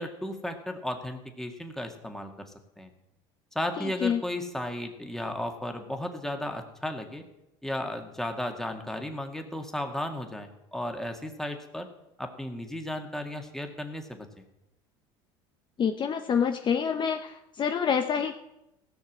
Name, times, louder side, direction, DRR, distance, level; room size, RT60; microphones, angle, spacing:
voice 1, 0.0-2.5 2.8-2.9 3.5-7.2 7.6-11.9 12.2-14.3, left 1 dB, 5° left, 4 dB, 2.1 m, -34 dB
voice 2, 3.8-4.2 15.8-18.3, left 7 dB, 35° left, 7 dB, 0.8 m, -27 dB
16.5 x 6.6 x 7.4 m, 0.89 s
supercardioid pair, 95°, 13 cm